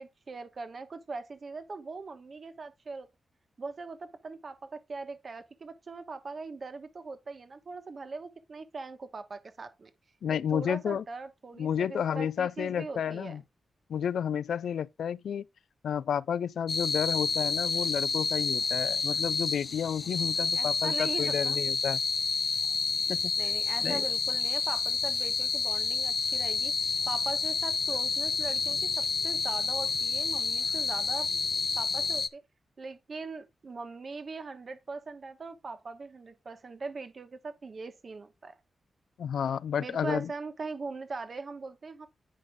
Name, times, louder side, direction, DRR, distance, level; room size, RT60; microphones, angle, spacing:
voice 1, 0.0-3.1 3.6-9.9 10.3-13.4 20.0-20.3 20.5-21.6 23.4-26.7 27.1-31.3 31.8-32.4 32.8-38.6 39.8-42.1, right 4 dB, 40° right, 1.1 m, -41 dB
voice 2, 10.2-11.0 11.6-13.4 13.9-15.5 15.8-22.0 23.1-23.4 23.8-24.0 39.2-40.3, left 8 dB, 85° left, 0.3 m, -31 dB
sound 1, 16.7-32.3, left 4 dB, 45° left, 0.7 m, -29 dB
9.6 x 5.3 x 3.5 m
wide cardioid pair, 140°, 0 cm